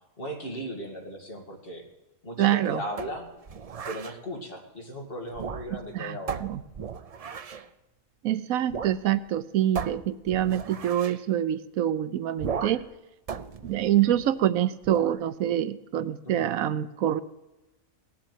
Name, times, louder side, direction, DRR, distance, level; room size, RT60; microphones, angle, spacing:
voice 1, 0.2-1.8 2.2-3.3 3.9-6.5 16.3-16.5, equal, 40° left, 2 dB, 2.5 m, -37 dB
voice 2, 2.4-2.8 5.7-6.6 8.2-12.8 13.6-17.2, right 11 dB, 80° right, 15 dB, 1.1 m, -26 dB
sound 1, 3.0-4.2 5.3-5.9 6.3-7.7 8.7-9.0 9.3-9.4 9.7-11.2 12.4-12.9 13.3-14.4 14.8-15.2, right 6 dB, 60° right, 0.4 m, -36 dB
18.0 x 7.3 x 9.1 m, 1.1 s
omnidirectional pair, 1.4 m